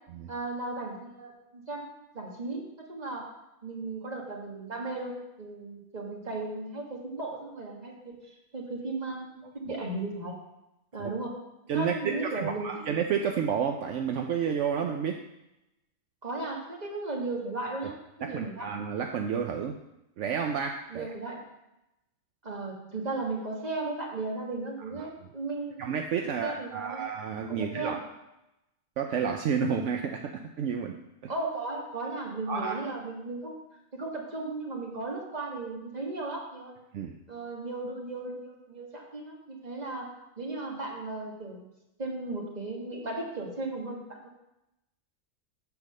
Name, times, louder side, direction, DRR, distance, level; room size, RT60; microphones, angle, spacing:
voice 1, 0.3-3.3 3.6-10.4 10.9-11.4 11.7-12.7 16.2-18.7 20.9-21.4 22.4-25.8 26.2-27.0 27.5-28.0 31.3-33.6 33.9-36.7 37.3-40.1 40.4-41.6 42.0-44.3, right 2 dB, 35° right, -1 dB, 1.7 m, -36 dB
voice 2, 11.7-15.2 18.2-19.8 20.2-21.1 25.0-25.1 25.8-28.0 29.0-31.0 32.5-32.8 36.9-37.1, right 7 dB, 75° right, 3 dB, 0.9 m, -30 dB
8.0 x 4.6 x 6.5 m, 0.90 s
omnidirectional pair, 1.3 m